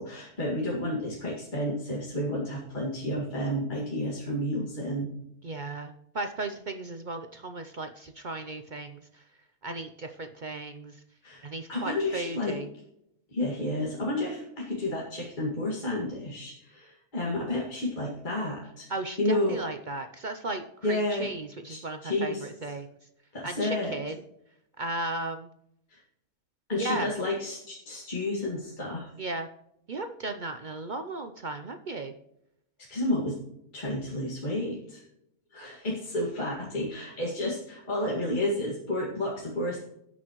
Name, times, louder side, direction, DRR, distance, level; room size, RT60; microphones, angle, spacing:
voice 1, 0.0-5.1 11.2-12.6 13.3-18.9 19.2-19.6 20.8-21.3 21.7-22.5 23.3-24.0 25.9-26.0 26.7-29.1 32.9-33.4 33.7-35.0 35.5-39.8, left 1 dB, 35° left, -4 dB, 2.2 m, -31 dB
voice 2, 5.4-9.2 9.6-11.0 11.4-12.7 18.9-22.9 23.4-24.2 24.8-25.5 26.7-27.1 29.2-29.5 29.9-32.1, right 2 dB, 50° right, 7 dB, 0.6 m, -35 dB
18.0 x 6.1 x 3.0 m, 0.79 s
omnidirectional pair, 1.5 m